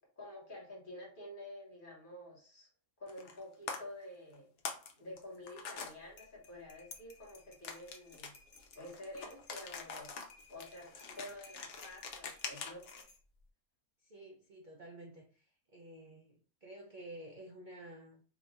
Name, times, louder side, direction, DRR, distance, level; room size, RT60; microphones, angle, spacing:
voice 1, 0.2-2.7 3.0-4.5 5.0-8.4 8.7-10.2 10.5-12.8, left 1 dB, 40° left, -2 dB, 1.2 m, -49 dB
sound 1, 3.1-3.4 3.7-3.8 4.3-4.9 5.2-5.9 7.6-13.0, left 5 dB, 60° left, 0.8 m, -44 dB
sound 2, 5.9-13.5, left 4 dB, 80° left, 0.4 m, -59 dB
voice 2, 14.0-18.2, right 1 dB, 50° right, -1 dB, 0.6 m, -52 dB
2.9 x 2.3 x 4.0 m, 0.40 s
omnidirectional pair, 1.6 m